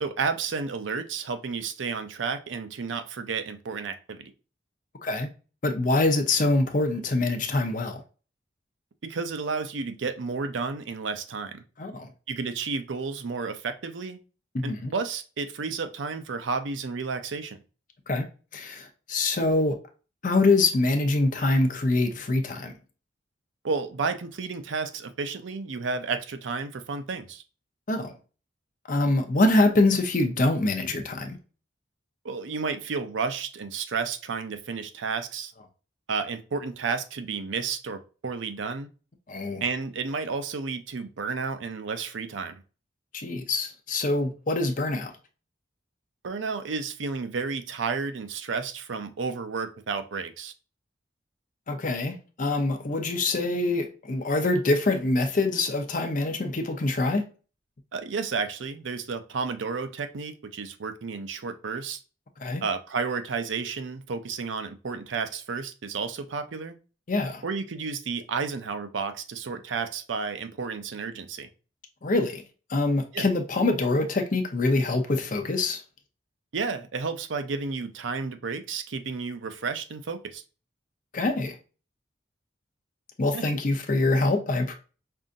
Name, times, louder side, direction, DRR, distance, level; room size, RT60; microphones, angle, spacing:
voice 1, 0.0-4.3 9.0-11.6 12.3-14.2 14.6-17.6 23.6-27.4 32.2-35.5 36.1-38.9 39.6-42.6 46.2-50.5 57.9-62.0 62.6-66.7 67.4-71.5 73.1-73.2 76.5-80.4 83.3-83.4, right 5 dB, 80° right, 0.5 m, -32 dB
voice 2, 5.6-8.0 11.8-12.1 14.5-14.9 18.1-18.3 18.5-19.7 20.2-22.7 27.9-28.1 28.9-31.4 39.3-39.6 43.1-45.1 51.7-57.2 62.4-62.6 67.1-67.4 72.0-72.4 72.7-75.8 81.1-81.6 83.2-84.7, left 2 dB, 45° left, 0.6 m, -24 dB
5.5 x 2.5 x 2.5 m
head